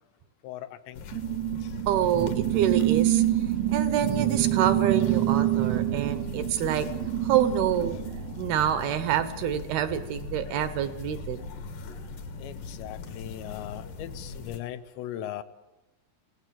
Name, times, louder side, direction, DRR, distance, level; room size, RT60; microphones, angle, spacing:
voice 1, 0.4-1.3 1.6-1.7 11.2-11.3 12.4-15.4, left 12 dB, 85° left, 3.3 m, -39 dB
sound 1, 0.9-14.6, left 4 dB, 60° left, 3.1 m, -40 dB
sound 2, 1.1-8.9, right 14 dB, 90° right, 3.2 m, -27 dB
voice 2, 1.9-3.2 3.7-6.9 7.2-8.0 8.4-11.5, right 10 dB, 75° right, 2.6 m, -27 dB
28.0 x 18.5 x 7.6 m
omnidirectional pair, 5.0 m